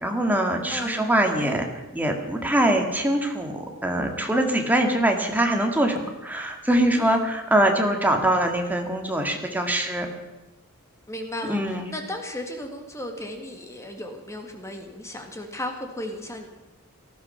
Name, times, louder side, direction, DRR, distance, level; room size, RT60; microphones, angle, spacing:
voice 1, 0.0-1.6 1.9-10.1 11.4-11.9, right 1 dB, 10° right, 3 dB, 2.0 m, -23 dB
voice 2, 0.7-1.1 1.4-1.6 6.9-7.2 11.1-16.5, left 1 dB, 15° left, 4 dB, 1.8 m, -35 dB
18.5 x 13.5 x 5.7 m, 1.1 s
head